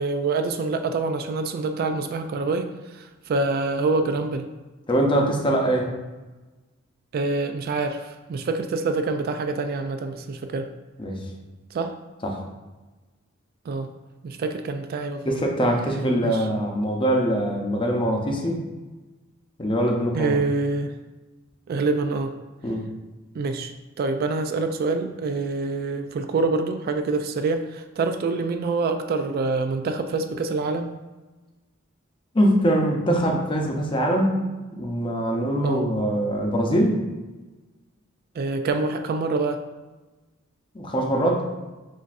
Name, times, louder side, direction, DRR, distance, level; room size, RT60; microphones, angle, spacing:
voice 1, 0.0-4.5 7.1-10.7 11.7-11.9 13.7-13.9 14.2-15.3 16.2-16.5 20.1-20.9 21.7-22.3 23.3-23.7 24.0-30.9 35.6-35.8 38.4-39.6, right 3 dB, 50° right, 7 dB, 0.3 m, -26 dB
voice 2, 4.9-5.9 11.0-11.2 12.2-12.4 15.3-18.6 19.6-20.4 22.6-22.9 32.3-34.4 34.7-37.0 40.7-41.4, right 1 dB, 25° left, 1 dB, 0.6 m, -23 dB
7.2 x 2.6 x 2.5 m, 1.2 s
head